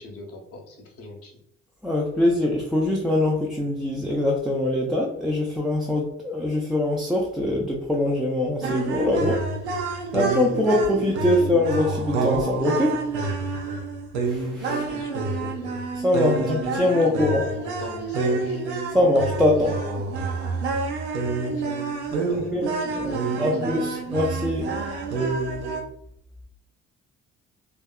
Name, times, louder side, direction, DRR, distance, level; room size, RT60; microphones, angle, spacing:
voice 1, 0.0-1.3 14.7-15.7 16.1-16.8 17.1-18.6 19.6-20.6 21.4-21.7 22.3-22.6 22.8-23.8, left 2 dB, 45° left, 1 dB, 0.7 m, -39 dB
voice 2, 1.8-9.5 10.1-13.0 14.2-14.8 15.9-17.5 18.9-19.7 22.2-24.7, left 1 dB, ahead, -3 dB, 0.3 m, -23 dB
sound 1, 8.6-25.8, right 3 dB, 75° right, 0.5 m, -28 dB
2.6 x 2.3 x 2.2 m, 0.71 s
figure-of-eight pair, 45°, 34 cm